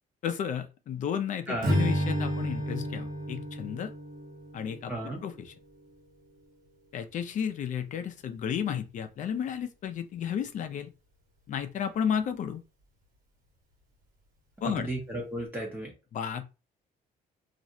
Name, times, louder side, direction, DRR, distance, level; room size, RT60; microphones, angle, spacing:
voice 1, 0.2-3.9 4.5-5.5 6.9-10.9 11.5-12.6 14.6-14.9 16.1-16.4, left 8 dB, 50° left, 0.4 m, -33 dB
voice 2, 1.5-1.8 4.9-5.2 14.8-15.9, right 1 dB, 10° right, 0.7 m, -34 dB
Strum, 1.6-6.0, equal, 55° right, 1.2 m, -32 dB
2.4 x 2.1 x 2.7 m
cardioid pair, 110°, 17 cm